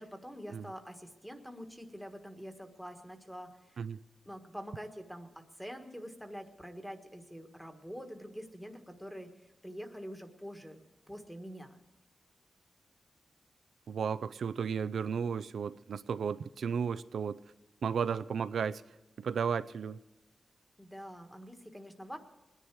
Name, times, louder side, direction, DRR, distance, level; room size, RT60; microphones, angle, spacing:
voice 1, 0.0-3.9 4.2-11.8 20.8-22.2, equal, 5° left, 5 dB, 1.5 m, -46 dB
voice 2, 13.9-17.4 17.8-18.8 19.2-20.0, right 6 dB, 85° right, 14 dB, 0.5 m, -34 dB
21.0 x 10.0 x 4.7 m, 1.1 s
wide cardioid pair, 130°, 0 cm